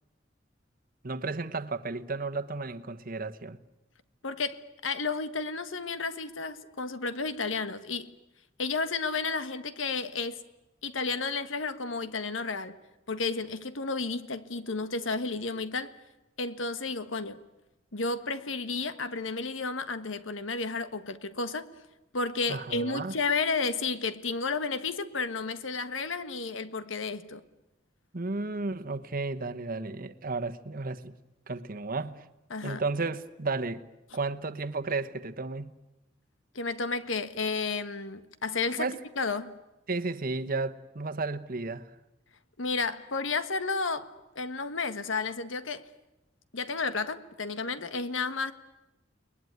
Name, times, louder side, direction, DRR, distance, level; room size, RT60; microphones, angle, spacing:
voice 1, 1.0-3.6 22.5-23.2 28.1-31.1 31.5-32.2 32.6-33.8 34.1-35.7 38.8-39.0 39.9-41.9, right 3 dB, 50° right, 1.1 m, -33 dB
voice 2, 4.2-8.1 8.6-10.4 10.8-12.7 13.1-15.9 16.4-17.4 17.9-21.7 22.1-27.4 32.5-32.8 36.5-38.9 39.2-39.5 42.6-45.9 46.5-48.5, left 4 dB, 90° left, 1.4 m, -32 dB
30.0 x 20.5 x 9.5 m
head